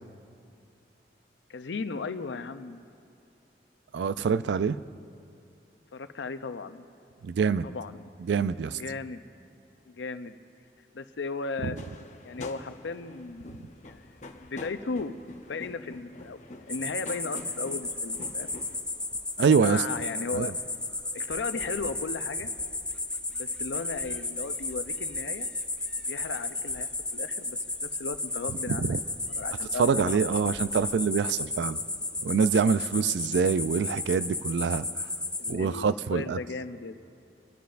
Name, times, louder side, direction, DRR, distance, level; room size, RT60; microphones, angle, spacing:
voice 1, 1.5-2.8 5.9-6.9 7.6-8.0 8.7-9.2 9.9-10.4 10.9-11.8 12.2-14.0 14.5-18.5 19.6-20.5 21.1-22.5 23.3-25.5 26.1-28.9 29.3-30.1 35.4-37.0, left 4 dB, 90° left, 10 dB, 0.6 m, -36 dB
voice 2, 3.9-4.8 7.2-7.7 8.3-8.8 19.4-19.8 20.3-20.5 28.8-29.0 29.8-31.8 32.2-34.8 35.5-36.4, right 6 dB, 75° right, 14 dB, 0.3 m, -25 dB
sound 1, 11.8-18.8, left 2 dB, 40° left, 0.7 m, -45 dB
sound 2, 16.7-35.5, left 2 dB, 5° left, 0.4 m, -34 dB
26.0 x 11.5 x 2.5 m, 2.6 s
head